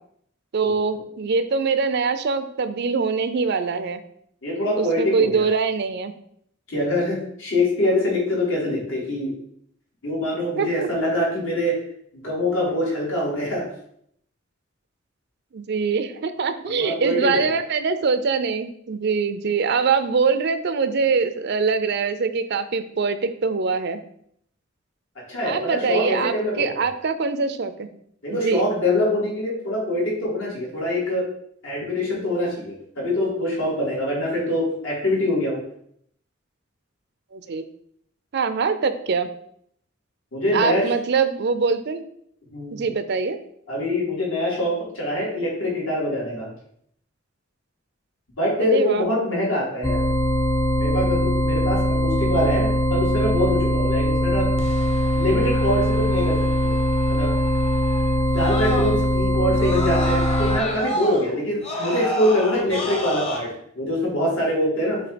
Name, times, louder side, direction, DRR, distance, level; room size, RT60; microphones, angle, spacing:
voice 1, 0.5-4.0 4.8-6.1 10.6-10.9 15.5-24.0 25.4-27.9 28.3-28.7 37.3-37.6 38.3-39.3 40.5-42.0 42.7-43.4 48.6-49.1 59.5-59.8, right 5 dB, 55° right, 11 dB, 0.5 m, -23 dB
voice 2, 4.4-5.4 6.7-9.3 10.0-11.8 12.2-13.6 16.8-17.5 25.3-26.9 28.2-31.3 31.6-35.6 40.3-40.9 42.5-42.8 43.7-46.5 48.4-50.1 50.8-54.5 55.2-56.7 57.1-57.3 58.3-65.0, left 1 dB, 75° left, -5 dB, 2.7 m, -24 dB
sound 1, 49.8-60.6, equal, 15° left, 0.4 m, -21 dB
Screaming, 54.6-59.2 59.5-63.4, left 1 dB, 30° left, 1.1 m, -31 dB
6.9 x 2.8 x 5.1 m, 0.69 s
head